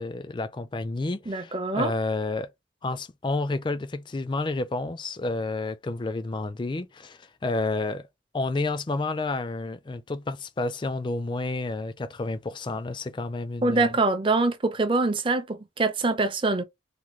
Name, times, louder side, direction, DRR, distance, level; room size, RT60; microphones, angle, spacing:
voice 1, 0.0-2.5 2.8-8.1 8.3-13.9, left 2 dB, 25° left, 0.4 m, -30 dB
voice 2, 1.3-1.9 13.6-16.6, right 3 dB, 30° right, 0.5 m, -24 dB
3.5 x 2.2 x 3.0 m
head